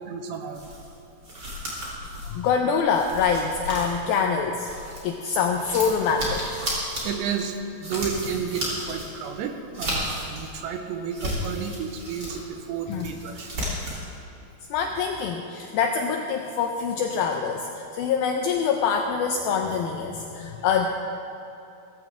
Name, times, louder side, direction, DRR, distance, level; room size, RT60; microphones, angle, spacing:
voice 1, 0.1-0.6 2.2-2.4 7.0-13.5, right 7 dB, 85° right, 5 dB, 3.2 m, -32 dB
sound 1, 0.5-5.2 5.5-10.6 11.0-12.4 12.7-14.0, equal, 25° right, 3.2 m, -33 dB
voice 2, 2.3-4.7 5.0-6.5 12.9-13.1 14.7-20.9, left 6 dB, 85° left, 3 dB, 2.1 m, -25 dB
17.0 x 15.0 x 3.6 m, 2.9 s
omnidirectional pair, 5.0 m